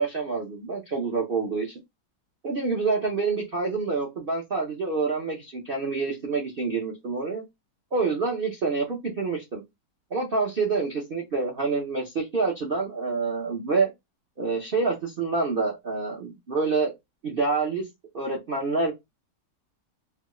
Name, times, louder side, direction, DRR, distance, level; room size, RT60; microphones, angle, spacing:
voice 1, 0.0-1.8 2.4-7.4 7.9-9.6 10.1-13.9 14.4-16.9 17.2-17.9 18.1-18.9, right 4 dB, 60° right, 0.5 m, -27 dB
3.4 x 2.1 x 3.0 m
omnidirectional pair, 1.9 m